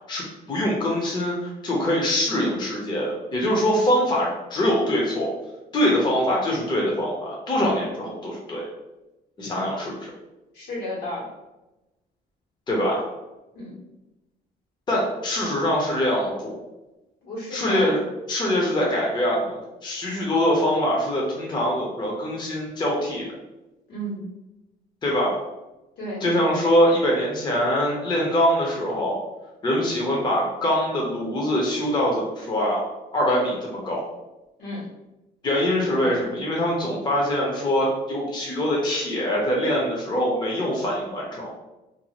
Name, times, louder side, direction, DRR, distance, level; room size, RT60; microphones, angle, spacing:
voice 1, 0.1-5.3 5.7-8.7 9.4-10.1 12.7-13.0 14.9-16.5 17.5-23.3 25.0-25.3 26.2-29.2 29.6-32.8 33.1-34.0 35.4-41.5, equal, 25° left, -3 dB, 0.6 m, -23 dB
voice 2, 10.5-11.3 13.5-13.8 17.2-17.9 23.9-24.2 26.0-26.2 34.6-34.8, equal, 75° left, -5 dB, 1.3 m, -32 dB
2.6 x 2.4 x 2.9 m, 1.0 s
cardioid pair, 110°, 17 cm